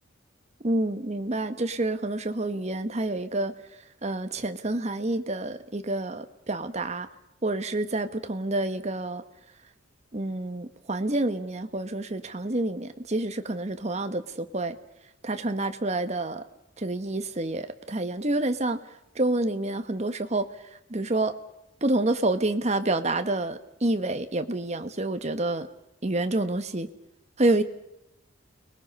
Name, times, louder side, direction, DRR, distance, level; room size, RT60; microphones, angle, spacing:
voice 1, 0.6-3.5 4.0-7.1 7.4-9.2 10.1-14.8 15.2-16.4 16.8-21.3 21.8-25.7 26.0-26.9 27.4-27.6, right 2 dB, 35° right, 9 dB, 1.2 m, -28 dB
29.5 x 20.0 x 5.4 m, 0.86 s
head